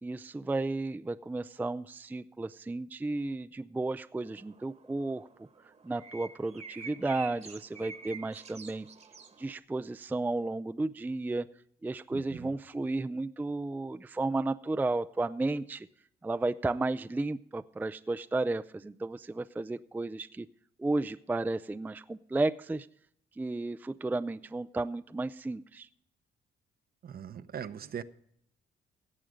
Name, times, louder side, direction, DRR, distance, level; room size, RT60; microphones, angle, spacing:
voice 1, 0.0-5.5 5.8-8.9 9.4-11.5 11.8-15.9 16.2-20.5 20.8-22.9 23.4-25.9, right 2 dB, 10° right, 0.4 m, -33 dB
sound 1, 4.2-9.5, right 4 dB, 35° right, 1.2 m, -49 dB
voice 2, 12.1-12.5 27.0-28.0, right 8 dB, 50° right, 0.8 m, -40 dB
17.0 x 7.5 x 5.1 m
cardioid pair, 90°, 20 cm